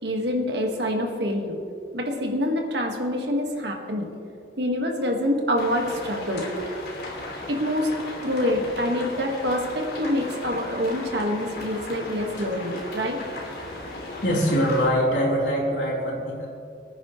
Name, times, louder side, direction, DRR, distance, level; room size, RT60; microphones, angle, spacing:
voice 1, 0.0-1.6 1.9-4.1 4.6-6.4 7.5-7.9 8.2-13.2, equal, 65° right, 1 dB, 1.8 m, -26 dB
sound 1, 5.6-14.9, left 1 dB, 55° left, 2.8 m, -36 dB
voice 2, 14.2-16.5, equal, 70° left, -5 dB, 3.8 m, -23 dB
23.5 x 9.9 x 3.2 m, 2.5 s
head